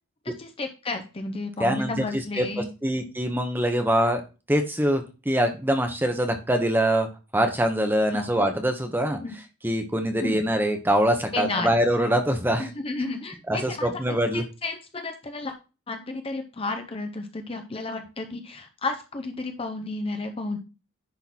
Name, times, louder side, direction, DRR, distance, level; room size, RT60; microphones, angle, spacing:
voice 1, 0.2-2.7 8.1-8.3 9.2-9.4 10.2-10.4 11.3-11.7 12.6-15.6 15.9-20.6, left 3 dB, 25° left, 5 dB, 0.7 m, -32 dB
voice 2, 1.6-2.5 2.8-4.2 4.5-7.1 7.3-9.2 9.6-12.7 13.5-14.4, right 1 dB, 10° right, 6 dB, 1.0 m, -24 dB
10.5 x 3.9 x 4.2 m, 0.31 s
head